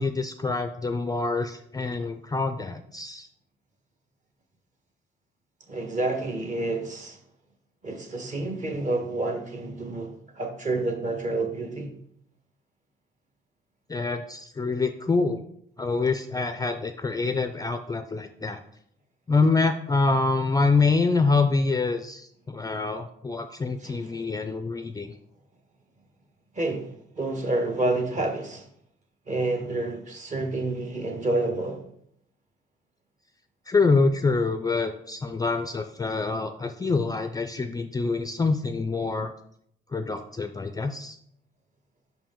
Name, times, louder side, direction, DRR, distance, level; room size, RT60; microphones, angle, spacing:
voice 1, 0.0-3.3 13.9-15.4 15.8-18.6 19.3-25.1 33.7-39.3 39.9-41.2, left 3 dB, 20° left, 0.4 m, -26 dB
voice 2, 5.7-7.2 7.8-11.9 23.8-24.0 26.5-26.9 27.2-28.6 29.3-31.8, right 2 dB, 35° right, 1.4 m, -29 dB
5.5 x 4.9 x 3.7 m
cardioid pair, 90°, 20 cm